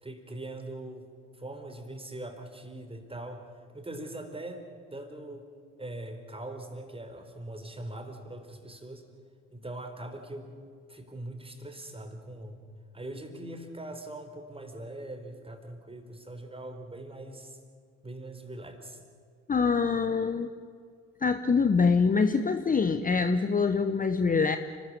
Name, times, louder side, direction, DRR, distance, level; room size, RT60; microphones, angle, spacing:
voice 1, 0.0-1.1 1.4-3.4 3.7-4.7 4.9-5.5 5.8-9.0 9.5-10.6 10.9-12.6 12.9-17.6 18.0-19.0, right 1 dB, 15° right, 7 dB, 3.9 m, -41 dB
voice 2, 19.5-20.5 21.2-24.6, left 5 dB, 20° left, 9 dB, 1.1 m, -24 dB
29.5 x 13.5 x 9.5 m, 2.1 s
figure-of-eight pair, 55°, 37 cm